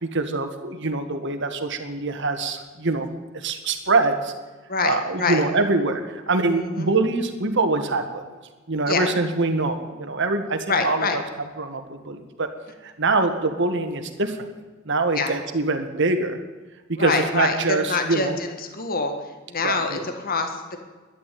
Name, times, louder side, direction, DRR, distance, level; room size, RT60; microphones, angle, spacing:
voice 1, 0.0-3.1 3.3-4.3 4.8-8.2 8.7-11.2 11.6-12.5 12.8-14.5 14.8-16.4 16.9-18.3 19.6-20.0, right 3 dB, 60° right, 7 dB, 1.8 m, -24 dB
voice 2, 4.7-5.4 6.5-6.9 8.9-9.1 10.7-11.2 15.1-15.3 17.0-19.1 19.5-20.8, left 4 dB, 45° left, 6 dB, 1.7 m, -25 dB
12.5 x 11.0 x 8.6 m, 1.3 s
head